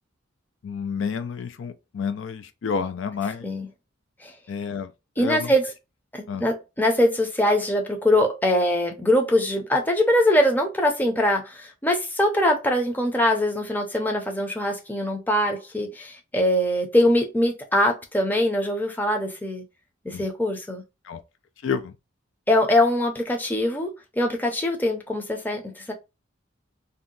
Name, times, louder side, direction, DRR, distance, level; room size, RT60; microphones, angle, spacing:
voice 1, 0.6-3.5 4.5-4.9 5.2-5.5 6.3-6.5 20.1-20.3 21.0-21.2 21.6-22.0, left 6 dB, 70° left, 0.4 m, -29 dB
voice 2, 5.2-5.7 6.1-19.6 20.0-20.8 22.5-25.9, left 1 dB, 10° left, 0.6 m, -22 dB
2.7 x 2.2 x 3.7 m
head